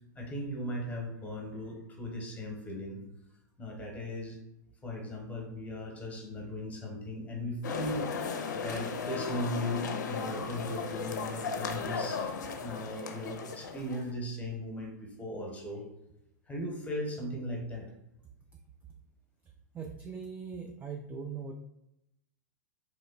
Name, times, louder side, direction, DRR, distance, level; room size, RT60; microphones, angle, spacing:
voice 1, 0.1-3.0 3.6-4.4 4.8-12.2 12.6-15.8 16.5-17.9, equal, 15° left, 0 dB, 0.9 m, -38 dB
sound 1, 7.6-14.1, left 5 dB, 70° left, 0.4 m, -36 dB
voice 2, 19.7-21.5, right 6 dB, 15° right, 2 dB, 0.3 m, -40 dB
3.0 x 2.1 x 3.7 m, 0.87 s
hypercardioid pair, 100°, 10 cm